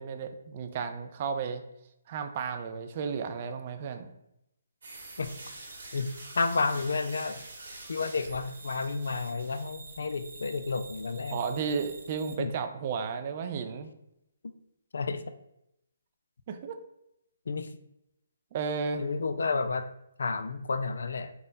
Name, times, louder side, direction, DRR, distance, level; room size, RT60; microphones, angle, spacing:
voice 1, 0.0-1.6 2.1-4.1 11.3-13.9 16.5-16.8 18.5-19.0, right 6 dB, 40° right, 8 dB, 0.4 m, -33 dB
sound 1, 4.8-12.4, right 2 dB, 65° right, 1.2 m, -46 dB
voice 2, 5.9-7.4 7.9-11.4 12.4-12.5 14.9-15.2 17.5-17.7 19.0-19.9 20.2-21.3, left 4 dB, 70° left, 9 dB, 0.3 m, -31 dB
3.6 x 2.1 x 3.9 m, 0.81 s
figure-of-eight pair, 145°, 0 cm